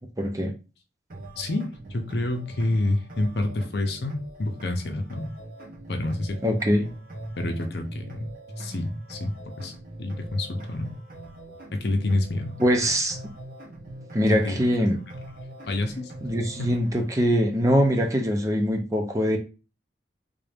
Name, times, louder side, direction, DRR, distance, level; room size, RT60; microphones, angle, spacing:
voice 1, 0.2-0.5 6.4-6.9 12.6-13.2 14.1-15.0 16.2-19.4, equal, 20° right, 0.6 m, -23 dB
sound 1, 1.1-17.1, right 1 dB, 50° right, 0.9 m, -42 dB
voice 2, 1.4-5.3 5.9-6.4 7.4-8.3 8.6-9.7 10.0-11.0 11.7-12.6 14.3-14.6 15.7-16.1 16.6-16.8, left 2 dB, 65° left, 0.7 m, -28 dB
3.7 x 2.6 x 3.4 m
head